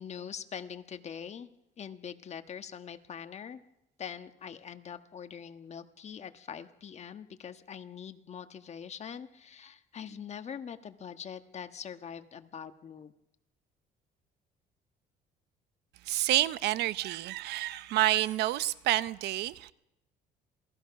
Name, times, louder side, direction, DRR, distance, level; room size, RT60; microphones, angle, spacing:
voice 1, 0.0-1.5 1.8-3.6 4.0-13.1, left 7 dB, 40° left, 1.4 m, -43 dB
voice 2, 16.0-19.7, right 15 dB, 80° right, 0.8 m, -29 dB
27.0 x 18.0 x 5.9 m
cardioid pair, 110°, 17 cm